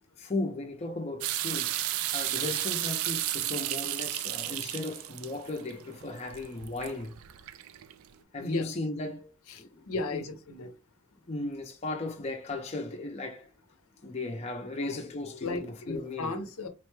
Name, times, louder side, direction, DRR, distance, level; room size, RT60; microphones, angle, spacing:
voice 1, 0.2-7.2 8.3-9.3 9.6-10.3 11.3-13.5 14.0-16.3, left 2 dB, 30° left, 0.5 m, -36 dB
sound 1, 1.2-8.1, right 13 dB, 70° right, 0.3 m, -33 dB
voice 2, 8.4-8.7 9.5-10.7 14.8-15.0 15.4-16.7, left 3 dB, 75° left, 0.6 m, -36 dB
3.9 x 2.2 x 3.1 m
head